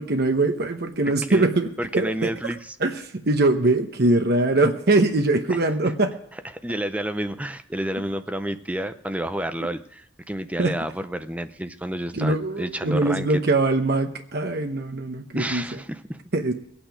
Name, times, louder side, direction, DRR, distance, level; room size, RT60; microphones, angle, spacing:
voice 1, 0.0-1.7 1.9-2.3 2.8-6.1 10.6-10.7 12.1-15.7 16.3-16.5, right 2 dB, 55° right, 6 dB, 0.9 m, -22 dB
voice 2, 1.8-2.6 5.5-5.6 5.8-5.9 6.6-13.4 15.3-16.2, right 1 dB, 5° right, 9 dB, 0.6 m, -30 dB
20.5 x 8.8 x 5.1 m, 0.77 s
head